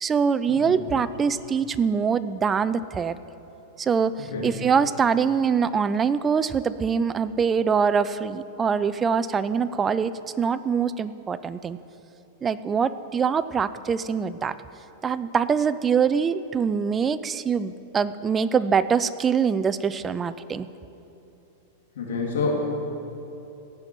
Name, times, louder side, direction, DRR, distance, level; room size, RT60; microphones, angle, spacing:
voice 1, 0.0-3.2 3.8-11.8 12.4-14.6 15.0-20.7, right 6 dB, 20° right, 14 dB, 0.4 m, -24 dB
voice 2, 21.9-22.5, left 4 dB, 90° left, -2 dB, 3.1 m, -27 dB
16.0 x 6.0 x 9.8 m, 3.0 s
supercardioid pair, 145°, 0 cm